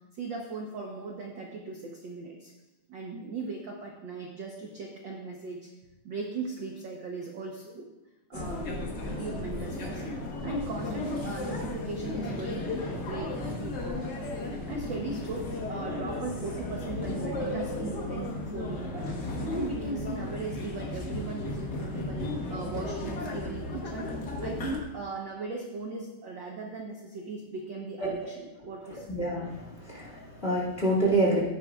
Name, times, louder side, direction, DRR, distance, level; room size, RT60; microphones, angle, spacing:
voice 1, 0.1-2.5 2.9-5.7 6.0-7.9 8.3-14.0 14.7-24.1 24.4-29.1, right 3 dB, 65° right, 0 dB, 1.1 m, -38 dB
sound 1, 8.3-24.8, left 2 dB, 50° left, 1.3 m, -34 dB
voice 2, 28.9-31.4, right 1 dB, 20° left, -4 dB, 2.1 m, -27 dB
14.5 x 10.0 x 2.4 m, 1.0 s
omnidirectional pair, 3.6 m